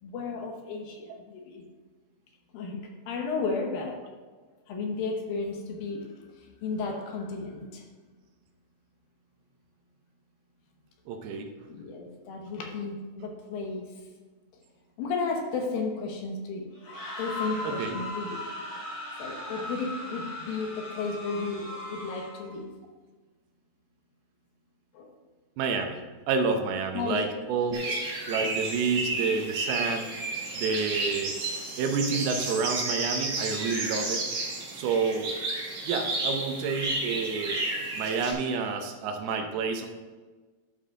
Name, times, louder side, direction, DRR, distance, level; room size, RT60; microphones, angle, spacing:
voice 1, 0.0-1.6 2.5-4.0 4.7-6.0 6.4-7.8 11.7-13.8 15.0-16.7 17.2-18.4 19.2-22.7 24.9-25.1 26.9-27.2, left 4 dB, 70° left, 2 dB, 2.6 m, -33 dB
voice 2, 11.1-11.5 17.6-18.0 25.6-26.0 26.3-27.8 28.3-30.1 30.5-31.3 31.8-34.3 34.7-35.3 35.8-37.6 37.9-39.9, right 5 dB, 80° right, 5 dB, 2.7 m, -29 dB
sound 1, 16.7-22.5, left 1 dB, 45° left, 3.1 m, -38 dB
sound 2, 27.7-38.3, right 2 dB, 50° right, 3.0 m, -32 dB
12.0 x 5.5 x 3.7 m, 1.4 s
omnidirectional pair, 4.5 m